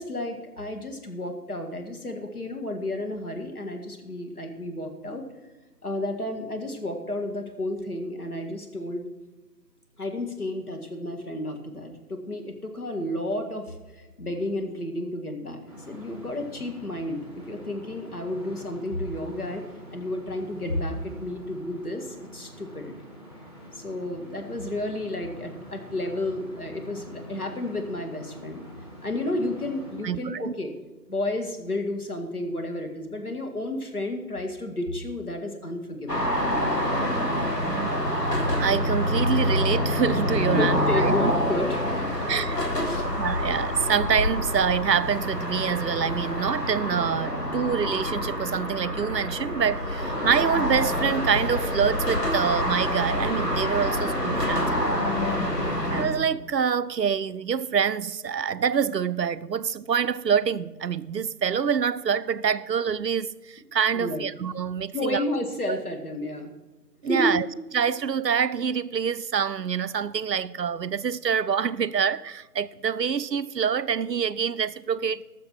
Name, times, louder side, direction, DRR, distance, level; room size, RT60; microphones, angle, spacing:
voice 1, 0.0-5.2 5.8-9.0 10.0-19.6 19.9-22.9 23.7-28.6 29.0-30.7 31.1-36.4 40.5-42.3 42.8-43.1 55.4-55.7 63.9-64.2 64.9-66.5 67.1-67.4, left 1 dB, 65° left, 2.3 m, -31 dB
sound 1, 15.7-30.0, equal, 15° left, 1.7 m, -45 dB
voice 2, 30.0-30.5 37.7-38.0 38.6-41.3 42.3-42.6 43.2-55.1 55.9-65.2 65.7-65.8 67.0-67.5 67.7-75.2, right 7 dB, 85° right, 0.7 m, -26 dB
sound 2, 36.1-56.1, left 1 dB, 80° left, 3.2 m, -26 dB
19.0 x 7.0 x 4.7 m
figure-of-eight pair, 165°, 48 cm